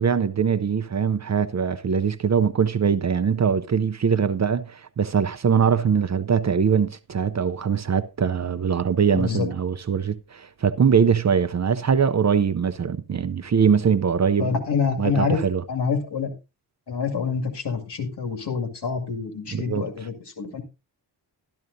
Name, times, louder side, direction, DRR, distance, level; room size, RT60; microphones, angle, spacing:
voice 1, 0.0-14.5 15.0-15.6 19.5-19.9, right 7 dB, 40° right, 0.5 m, -22 dB
voice 2, 9.1-9.5 14.4-15.4 15.7-16.3 16.9-20.6, left 5 dB, 70° left, 2.2 m, -26 dB
12.5 x 12.0 x 2.6 m
wide cardioid pair, 115°, 42 cm